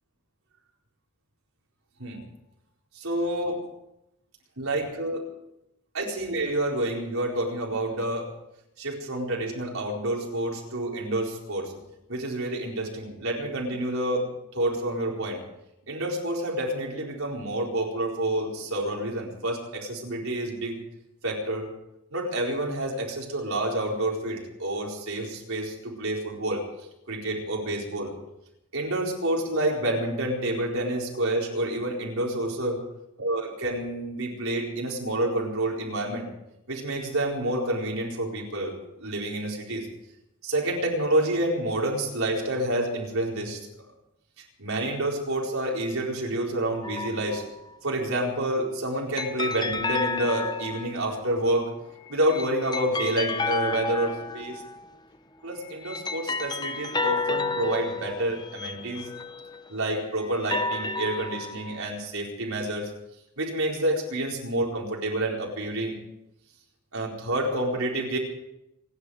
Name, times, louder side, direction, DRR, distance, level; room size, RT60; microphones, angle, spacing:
voice 1, 3.0-3.6 4.6-5.3 5.9-8.3 8.8-11.7 12.1-14.2 14.5-15.4 15.9-20.8 21.2-21.7 22.1-26.6 27.1-28.1 28.7-32.8 33.2-36.3 36.7-39.9 40.4-43.6 44.6-47.4 47.8-51.7 52.1-54.6 55.4-59.1 59.7-62.9 63.4-66.0 66.9-68.2, right 1 dB, 75° right, -1 dB, 4.4 m, -28 dB
sound 1, 46.8-47.6 49.2-51.1 52.1-54.8 55.6-59.7 60.3-61.8, left 3 dB, 20° left, 0.6 m, -31 dB
27.5 x 11.0 x 4.9 m, 0.86 s
head